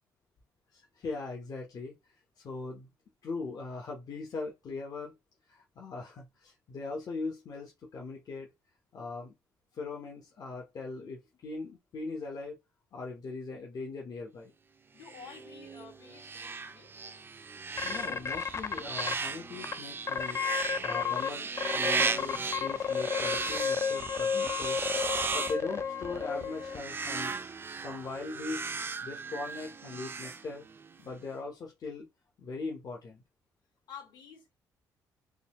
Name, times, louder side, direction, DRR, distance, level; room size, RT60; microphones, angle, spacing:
voice 1, 0.7-2.9 3.2-5.1 5.5-8.5 8.9-9.3 9.7-12.6 12.9-14.5 17.8-20.4 20.8-24.8 25.3-27.4 27.8-28.7 29.0-30.6 31.0-32.1 32.4-33.2, left 3 dB, 55° left, 0.9 m, -40 dB
voice 2, 14.9-16.9 33.9-34.5, left 7 dB, 75° left, 1.9 m, -50 dB
sound 1, 15.0-31.0, right 4 dB, 30° right, 0.5 m, -36 dB
sound 2, 17.8-19.1 19.6-19.7 20.1-21.3 21.6-26.8, left 6 dB, 35° left, 0.4 m, -32 dB
3.8 x 2.2 x 3.0 m
cardioid pair, 80°, 8 cm